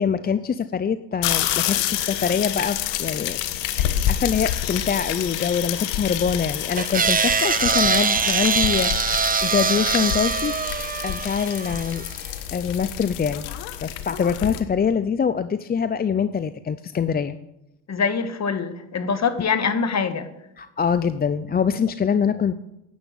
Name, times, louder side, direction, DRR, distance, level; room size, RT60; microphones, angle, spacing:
voice 1, 0.0-3.4 3.8-10.6 11.0-12.0 12.5-13.4 13.8-17.4 20.6-22.5, left 7 dB, 20° left, 0.5 m, -24 dB
sound 1, 1.2-14.6, left 11 dB, 75° left, 1.4 m, -28 dB
sound 2, 6.8-12.1, right 6 dB, 20° right, 0.6 m, -23 dB
voice 2, 17.9-20.3, left 5 dB, 35° left, 1.7 m, -24 dB
10.5 x 9.1 x 8.7 m
supercardioid pair, 80°, 44 cm